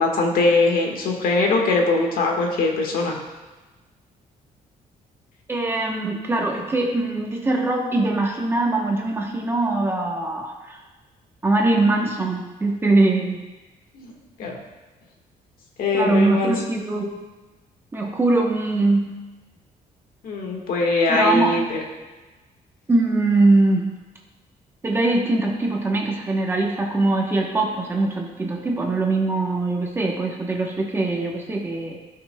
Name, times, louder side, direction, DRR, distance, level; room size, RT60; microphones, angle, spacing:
voice 1, 0.0-3.1 13.9-14.1 14.4-14.6 15.8-16.5 20.2-21.8, left 3 dB, 75° left, 1 dB, 1.5 m, -21 dB
voice 2, 5.5-10.8 11.4-13.4 15.9-17.1 17.9-19.1 21.1-21.6 22.9-23.9 24.8-32.0, right 2 dB, 15° right, 0 dB, 0.9 m, -22 dB
15.0 x 5.7 x 2.2 m, 1.2 s
cardioid pair, 180°, 15 cm